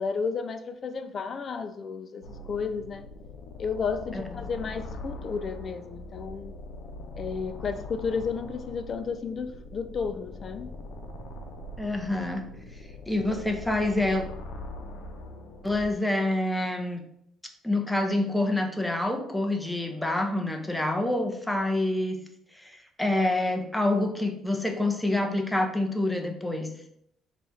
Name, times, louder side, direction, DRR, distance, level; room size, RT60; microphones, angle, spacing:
voice 1, 0.0-3.1 3.6-6.5 7.2-10.7, left 5 dB, 40° left, 9 dB, 0.3 m, -32 dB
sound 1, 2.2-15.9, left 2 dB, 80° left, 0.6 m, -42 dB
voice 2, 11.8-12.4 13.1-14.2 15.6-17.0 17.6-22.2 22.5-26.7, left 1 dB, 5° left, 4 dB, 0.6 m, -27 dB
4.0 x 2.4 x 4.3 m, 0.73 s
cardioid pair, 110°, 0 cm